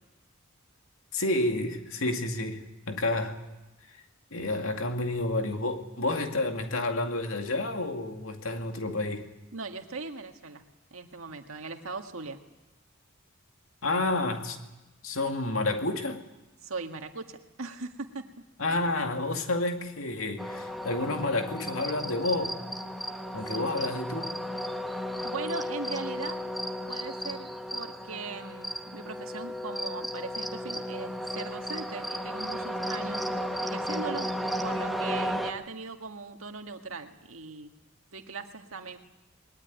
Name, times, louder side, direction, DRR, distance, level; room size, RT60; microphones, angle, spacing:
voice 1, 1.1-3.4 4.3-9.3 13.8-14.6 15.0-16.2 18.6-22.6 23.3-24.4, left 2 dB, 90° left, 2.2 m, -30 dB
voice 2, 9.5-10.6 10.9-12.4 16.6-18.2 23.5-23.9 25.2-26.4 26.9-33.3 33.6-34.3 34.6-37.7 38.1-39.0, right 4 dB, 85° right, 1.9 m, -39 dB
sound 1, 20.4-35.5, equal, ahead, 1.4 m, -34 dB
20.5 x 19.5 x 9.5 m
head